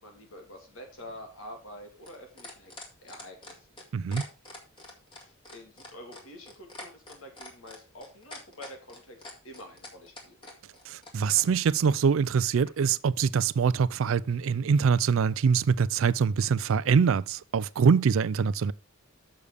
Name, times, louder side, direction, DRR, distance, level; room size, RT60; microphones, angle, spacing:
voice 1, 0.0-2.7 3.0-3.7 5.1-9.2 9.4-10.4, left 1 dB, 75° left, 2.6 m, -47 dB
sound 1, 0.9-11.5 12.7-12.8, left 2 dB, 25° left, 2.0 m, -45 dB
voice 2, 3.9-4.2 10.9-18.7, right 6 dB, 65° right, 0.4 m, -24 dB
6.9 x 6.7 x 5.0 m
head